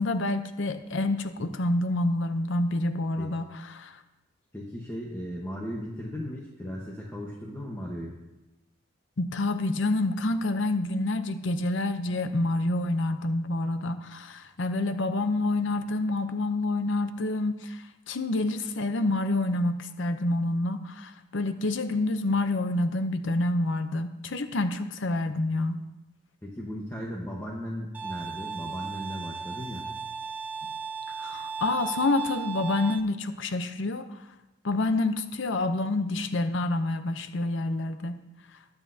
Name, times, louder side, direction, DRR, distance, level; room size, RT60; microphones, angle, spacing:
voice 1, 0.0-4.0 9.2-25.8 31.2-34.0 34.6-38.2, left 2 dB, 60° left, 9 dB, 0.7 m, -28 dB
voice 2, 4.5-8.1 26.4-29.9, equal, 10° left, -3 dB, 1.2 m, -36 dB
Bowed string instrument, 27.9-33.0, right 6 dB, 10° right, 0.5 m, -36 dB
20.5 x 8.2 x 2.8 m, 1.0 s
head